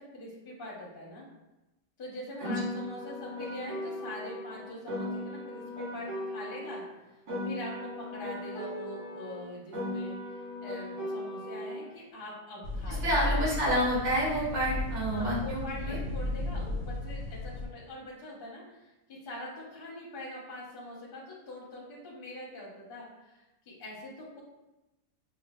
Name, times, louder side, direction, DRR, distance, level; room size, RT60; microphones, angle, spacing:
voice 1, 0.1-1.2 2.0-6.8 7.4-10.2 10.6-13.1 15.1-18.9 19.2-24.4, left 1 dB, 40° left, -4 dB, 0.8 m, -43 dB
Piano, 2.4-6.9 7.3-11.9, left 1 dB, 80° right, 2.0 m, -38 dB
sound 1, 12.6-17.7, left 2 dB, 75° left, 1.2 m, -34 dB
voice 2, 12.9-16.0, equal, 60° right, -8 dB, 1.9 m, -29 dB
5.7 x 2.0 x 2.3 m, 1.0 s
omnidirectional pair, 1.9 m